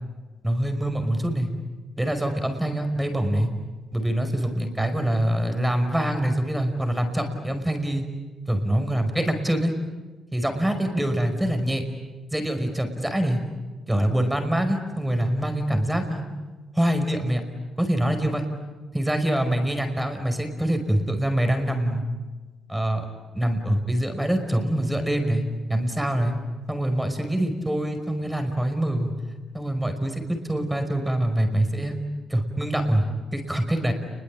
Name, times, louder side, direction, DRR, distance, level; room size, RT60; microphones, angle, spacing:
voice 1, 0.4-1.5 2.0-3.5 3.9-8.0 8.5-9.7 10.3-11.8 12.3-13.4 13.9-16.2 16.7-17.4 17.8-18.4 18.9-22.0 22.7-23.0 23.3-26.3 26.7-29.1 29.5-32.0 32.3-33.0 33.3-33.9, right 1 dB, 5° right, 7 dB, 5.4 m, -24 dB
29.5 x 22.5 x 8.9 m, 1.3 s
cardioid pair, 90°, 0 cm